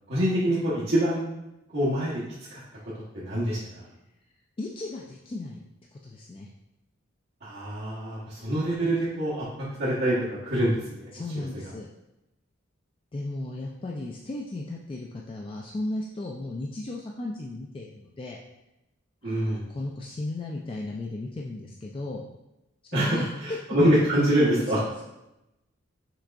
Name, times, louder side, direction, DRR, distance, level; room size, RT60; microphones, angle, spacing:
voice 1, 0.1-1.3 1.7-2.2 2.5-2.6 3.1-3.6 7.4-11.1 11.3-11.4 19.2-19.6 22.9-24.8, right 1 dB, 55° right, -10 dB, 1.2 m, -25 dB
voice 2, 4.6-5.6 5.9-6.5 11.1-11.9 13.1-18.4 19.2-22.2 22.9-23.3, left 2 dB, 25° left, -1 dB, 0.3 m, -35 dB
6.0 x 3.4 x 2.5 m, 0.91 s
head